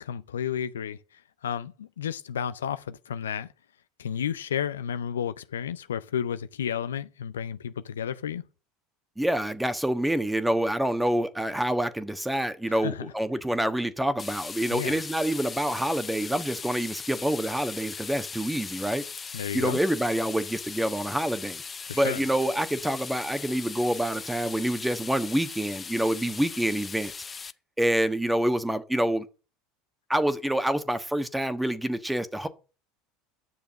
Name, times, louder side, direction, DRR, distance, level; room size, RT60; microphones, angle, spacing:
voice 1, 0.0-3.5 4.0-8.4 12.7-13.1 14.7-15.0 19.3-19.8 21.9-22.2, left 8 dB, 85° left, 0.5 m, -32 dB
voice 2, 9.2-19.0 19.5-21.6 21.9-27.1 27.8-29.3 30.1-32.5, right 1 dB, 5° right, 1.3 m, -27 dB
sound 1, 14.2-27.5, left 5 dB, 25° left, 0.7 m, -39 dB
10.5 x 6.8 x 7.4 m
hypercardioid pair, 80°, 0 cm